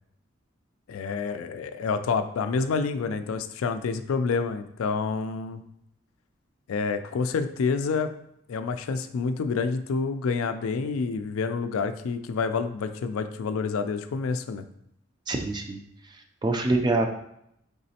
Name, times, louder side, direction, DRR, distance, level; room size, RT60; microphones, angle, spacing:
voice 1, 0.9-5.6 6.7-8.1 8.5-14.6, left 5 dB, 85° left, 9 dB, 0.4 m, -28 dB
voice 2, 15.3-15.8 16.4-17.1, right 2 dB, 20° right, 4 dB, 0.3 m, -24 dB
4.0 x 3.7 x 2.8 m, 0.75 s
head